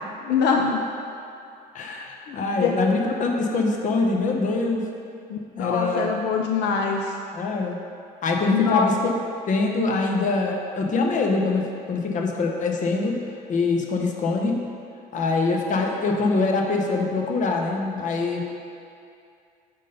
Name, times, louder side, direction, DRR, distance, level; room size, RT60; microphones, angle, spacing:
voice 1, 0.2-0.8 2.3-2.7 5.3-7.1 8.5-8.9, left 6 dB, 85° left, 2 dB, 0.4 m, -24 dB
voice 2, 1.7-4.8 5.6-6.1 7.3-7.8 8.2-9.1 9.5-13.2 13.5-14.6 15.1-18.4, left 3 dB, 50° left, 1 dB, 0.8 m, -24 dB
5.3 x 3.7 x 5.4 m, 2.5 s
cardioid pair, 110°, 17 cm